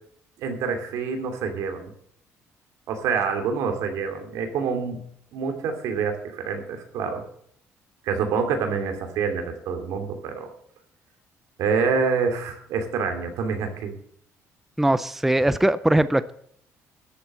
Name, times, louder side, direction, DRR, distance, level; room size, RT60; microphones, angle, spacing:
voice 1, 0.4-1.9 2.9-5.0 5.3-7.2 8.0-10.5 11.6-13.9, right 5 dB, 80° right, 5 dB, 2.7 m, -27 dB
voice 2, 14.8-16.3, right 1 dB, 5° right, 15 dB, 0.5 m, -20 dB
13.0 x 8.0 x 7.4 m, 0.65 s
cardioid pair, 140°, 5 cm